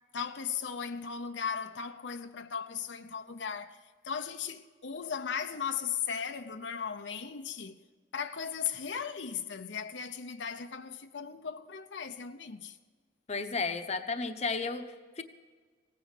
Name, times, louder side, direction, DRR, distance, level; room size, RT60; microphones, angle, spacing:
voice 1, 0.1-3.8 4.0-7.7 8.1-12.8, left 7 dB, 85° left, 0.7 m, -37 dB
voice 2, 13.3-15.2, left 4 dB, 40° left, 0.8 m, -33 dB
17.0 x 9.4 x 6.6 m
head